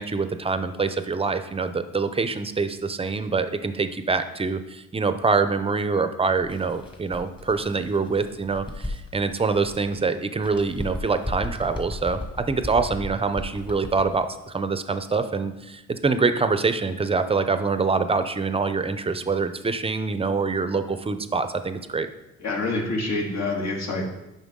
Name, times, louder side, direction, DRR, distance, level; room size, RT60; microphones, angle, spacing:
voice 1, 0.0-22.1, right 4 dB, 20° right, 10 dB, 0.6 m, -25 dB
Bird, 6.4-10.0 10.4-14.2, left 1 dB, 15° left, 1.3 m, -36 dB
voice 2, 22.4-24.0, left 2 dB, 60° left, -1 dB, 2.1 m, -26 dB
9.4 x 5.6 x 3.7 m, 0.96 s
cardioid pair, 90°, 30 cm